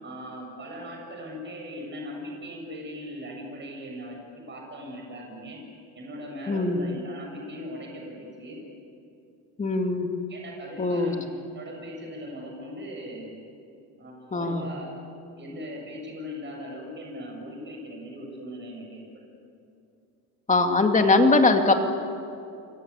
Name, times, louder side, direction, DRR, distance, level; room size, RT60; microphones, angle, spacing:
voice 1, 0.0-5.6 5.9-8.6 10.3-11.2 11.5-13.4 14.0-14.9 15.4-19.2, equal, 25° right, 1 dB, 7.4 m, -39 dB
voice 2, 6.5-6.8 9.6-10.1 10.8-11.1 14.3-14.6 20.5-21.8, left 3 dB, 20° left, 4 dB, 2.4 m, -21 dB
29.0 x 24.0 x 8.4 m, 2.6 s
cardioid pair, 130°, 40 cm